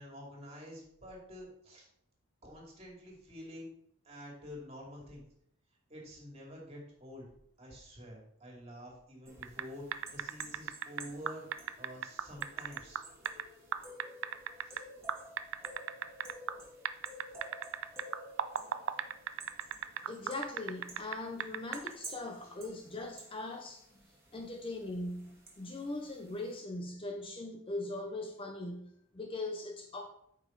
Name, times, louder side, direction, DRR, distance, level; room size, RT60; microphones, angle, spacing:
voice 1, 0.0-1.9 2.4-3.7 4.0-5.2 5.9-7.3 7.6-13.0 14.6-14.8, equal, 30° right, 2.5 m, -48 dB
sound 1, 9.3-26.6, right 1 dB, 10° right, 1.8 m, -53 dB
sound 2, 9.4-9.6 9.9-13.4 13.7-14.8 15.1-16.6 16.9-21.2 21.4-21.9, right 8 dB, 65° right, 0.4 m, -35 dB
voice 2, 20.1-23.9 24.3-30.1, left 2 dB, 25° left, 0.6 m, -40 dB
8.7 x 5.2 x 3.9 m
head